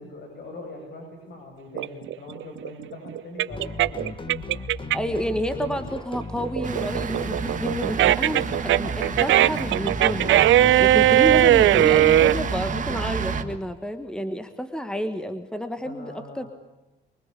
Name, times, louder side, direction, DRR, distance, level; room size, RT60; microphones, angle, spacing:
voice 1, 0.0-4.0 15.8-16.5, left 2 dB, 60° left, 2 dB, 7.8 m, -41 dB
sound 1, 1.8-5.2 5.6-12.4, right 13 dB, 80° right, 0.8 m, -19 dB
sound 2, 3.5-13.6, left 2 dB, 25° left, 2.1 m, -36 dB
voice 2, 4.9-10.4 10.8-16.5, equal, 5° left, 9 dB, 1.6 m, -30 dB
sound 3, 6.6-13.4, right 6 dB, 40° right, 1.9 m, -30 dB
24.5 x 24.0 x 8.5 m, 1.0 s
cardioid pair, 120°, 20 cm